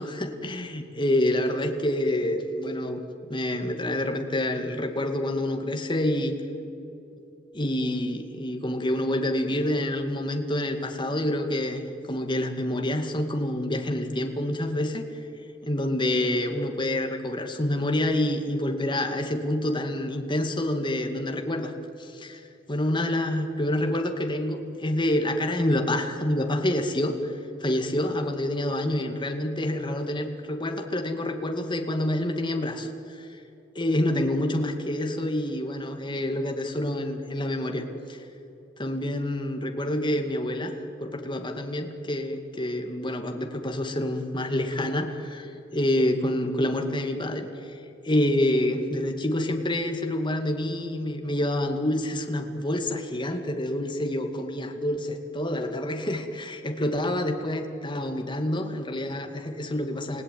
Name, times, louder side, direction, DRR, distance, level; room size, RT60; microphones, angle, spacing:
voice 1, 0.0-3.0 3.3-6.4 7.5-15.0 15.6-21.7 22.0-22.4 22.7-27.3 27.6-33.2 33.8-38.3 38.8-40.8 41.0-47.7 48.0-60.2, left 1 dB, 25° left, 4 dB, 2.3 m, -27 dB
29.5 x 17.0 x 9.5 m, 2.8 s
head